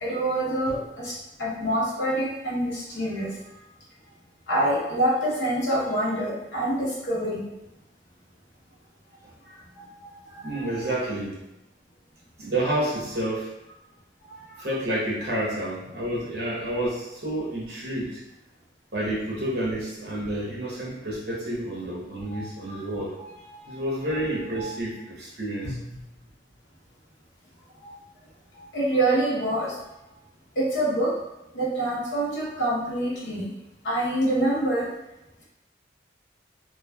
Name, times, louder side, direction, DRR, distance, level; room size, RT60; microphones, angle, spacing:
voice 1, 0.0-3.3 4.5-7.4 9.5-10.9 14.3-14.4 22.3-22.8 23.1-23.8 24.1-24.2 24.5-24.7 27.8-27.9 28.5-29.7 30.6-31.1 31.5-33.5 33.8-34.9, right 1 dB, 80° left, -5 dB, 0.9 m, -27 dB
voice 2, 10.4-11.4 12.4-13.5 14.6-18.2 18.9-23.2 23.7-26.0, right 1 dB, 60° right, -5 dB, 0.9 m, -29 dB
3.2 x 2.3 x 2.2 m, 0.93 s
head